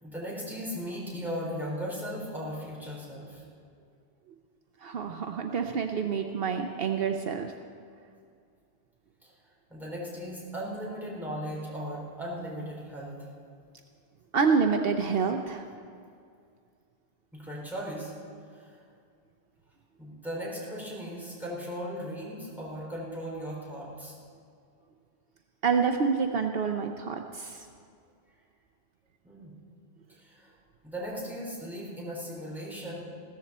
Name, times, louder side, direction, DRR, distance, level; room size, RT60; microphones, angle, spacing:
voice 1, 0.0-3.4 9.2-9.3 9.7-13.3 17.3-18.1 18.5-18.8 20.0-24.1 29.2-29.6 30.1-30.5 30.8-33.1, equal, ahead, -6 dB, 4.0 m, -37 dB
voice 2, 4.8-7.5 14.3-15.6 25.6-27.7, right 5 dB, 70° right, 5 dB, 0.9 m, -27 dB
16.0 x 14.0 x 4.2 m, 2.3 s
omnidirectional pair, 1.0 m